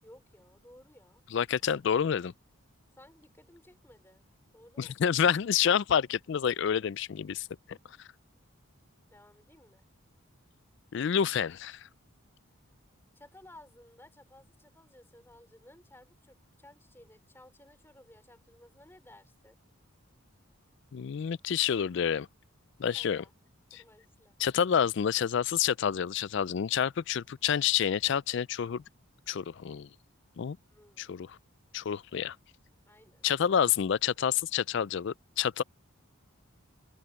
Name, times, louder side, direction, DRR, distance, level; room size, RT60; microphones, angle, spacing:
voice 1, 0.0-1.2 2.9-4.2 4.5-5.3 9.1-9.8 13.1-19.6 22.9-24.4 30.7-31.2 32.9-33.3, left 1 dB, 10° left, 4.0 m, -57 dB
voice 2, 1.3-2.3 4.8-7.8 10.9-11.9 20.9-22.3 22.8-23.2 23.7-23.8 24.4-28.8 29.3-29.9 30.4-30.6 31.0-31.4 31.7-32.4 33.2-35.6, left 8 dB, 55° left, 0.3 m, -28 dB
open air
head